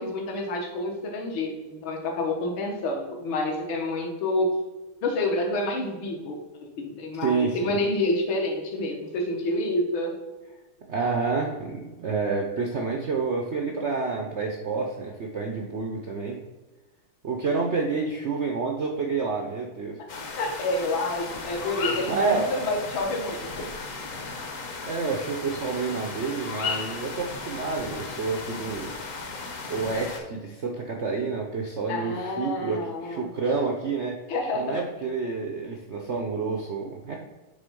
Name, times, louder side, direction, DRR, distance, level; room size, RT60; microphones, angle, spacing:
voice 1, 0.0-4.5 5.0-10.2 20.4-23.7 31.9-33.3 34.3-34.8, left 2 dB, 70° left, 2 dB, 1.9 m, -28 dB
voice 2, 7.2-7.8 10.9-16.4 17.2-20.0 22.0-22.5 24.8-28.9 29.7-34.2 34.5-37.2, right 4 dB, 80° right, 1 dB, 0.6 m, -29 dB
sound 1, 20.1-30.2, left 4 dB, 50° left, 1.1 m, -35 dB
7.9 x 3.5 x 5.3 m, 1.2 s
omnidirectional pair, 2.3 m